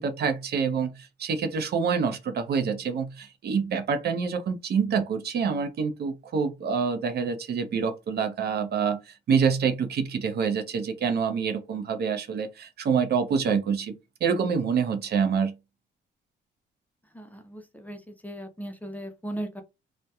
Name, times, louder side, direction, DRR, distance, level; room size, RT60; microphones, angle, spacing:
voice 1, 0.0-13.9 14.2-15.5, right 6 dB, 55° right, 0.5 m, -26 dB
voice 2, 17.1-19.6, right 1 dB, 10° left, 0.4 m, -37 dB
2.7 x 2.1 x 2.3 m
cardioid pair, 90°, 20 cm